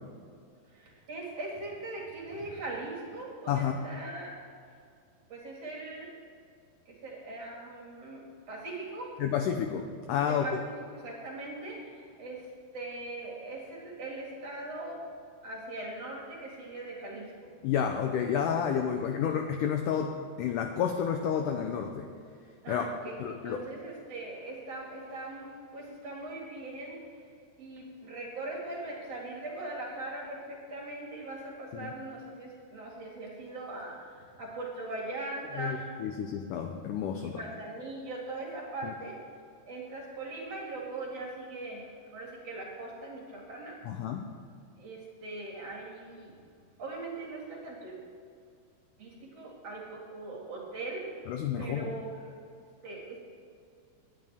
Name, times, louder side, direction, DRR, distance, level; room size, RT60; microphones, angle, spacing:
voice 1, 0.7-4.4 5.3-6.1 6.9-9.1 10.2-12.5 12.7-15.0 15.4-17.5 22.6-27.3 27.6-35.9 37.2-39.2 39.7-43.8 44.8-46.3 46.8-48.0 49.0-51.1 51.6-52.4 52.8-53.2, right 2 dB, 45° right, -2 dB, 2.7 m, -40 dB
voice 2, 9.2-10.4 17.6-22.1 22.7-22.8 23.2-23.7 31.7-31.9 35.6-37.4 43.9-44.3 51.3-51.9, left 8 dB, 85° left, 5 dB, 1.8 m, -30 dB
19.0 x 10.5 x 3.5 m, 2.4 s
omnidirectional pair, 4.5 m